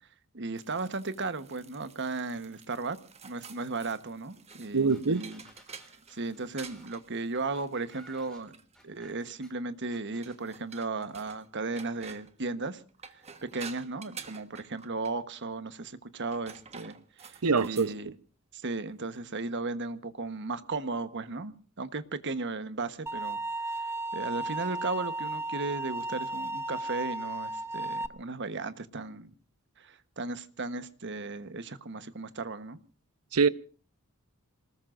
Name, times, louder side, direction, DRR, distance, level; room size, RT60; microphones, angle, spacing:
voice 1, 0.3-3.0 3.2-5.4 6.1-8.6 8.8-12.8 13.5-18.1 18.5-23.4 23.8-23.9 24.1-29.3 29.8-32.8, right 3 dB, 55° right, 1.2 m, -36 dB
sound 1, 0.6-9.5 10.2-11.5 11.8-12.4 12.9-15.2 16.2-17.9, right 6 dB, 30° right, 1.3 m, -50 dB
sound 2, 4.5-4.6 4.9-9.5 9.9-10.4, equal, 5° left, 4.8 m, -57 dB
voice 2, 4.7-5.2 17.4-18.0 33.3-33.5, right 4 dB, 80° right, 0.8 m, -24 dB
sound 3, 23.1-28.1, right 2 dB, 15° right, 0.8 m, -34 dB
27.5 x 20.0 x 2.6 m
head